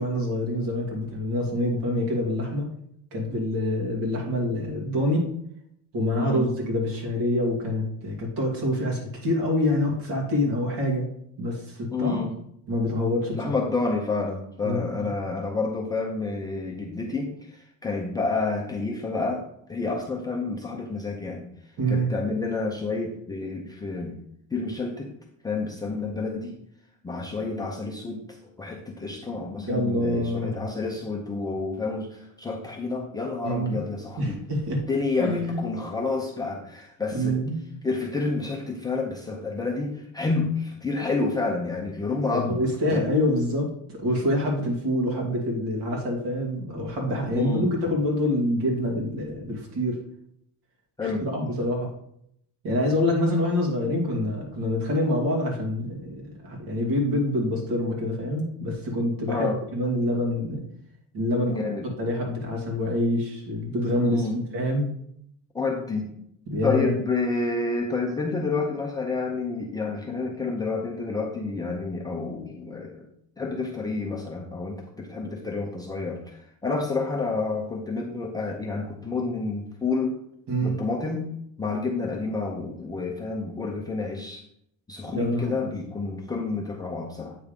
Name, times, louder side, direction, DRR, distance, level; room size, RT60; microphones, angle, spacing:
voice 1, 0.0-2.7 3.1-5.3 5.9-11.1 11.4-12.2 12.7-13.4 14.6-15.1 21.8-22.1 29.7-30.5 33.4-33.8 34.2-34.9 35.2-35.6 37.1-37.6 42.3-50.0 51.0-51.9 52.6-60.6 61.1-61.6 62.0-64.3 64.5-64.9 66.5-67.0 80.5-80.8 85.1-85.5, left 1 dB, 55° right, -1 dB, 2.4 m, -26 dB
voice 2, 6.1-6.5 11.9-12.4 13.3-19.4 19.7-21.5 21.9-24.2 24.5-25.1 25.4-26.6 27.0-34.4 34.9-37.4 37.8-42.6 42.9-43.1 47.3-47.7 51.0-51.3 59.3-59.6 61.5-61.9 64.0-64.4 65.5-66.1 66.6-73.1 73.4-80.2 80.6-81.3 81.6-84.4 84.9-87.4, left 3 dB, 10° left, -2 dB, 0.6 m, -29 dB
8.4 x 3.6 x 5.1 m, 0.73 s
cardioid pair, 165°, 41 cm